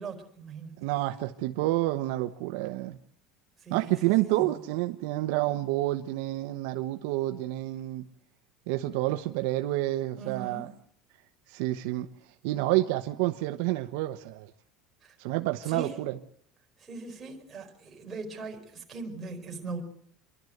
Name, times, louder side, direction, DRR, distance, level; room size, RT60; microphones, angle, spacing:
voice 1, 0.0-0.8 3.6-4.5 10.1-10.7 15.0-15.1 15.7-16.0 16.8-19.8, right 4 dB, 15° right, 4.7 m, -40 dB
voice 2, 0.8-3.0 3.7-8.0 8.7-10.7 11.5-12.1 12.4-14.5 15.2-16.1, right 17 dB, 70° right, 1.0 m, -29 dB
28.0 x 12.0 x 7.9 m
cardioid pair, 160°, 0 cm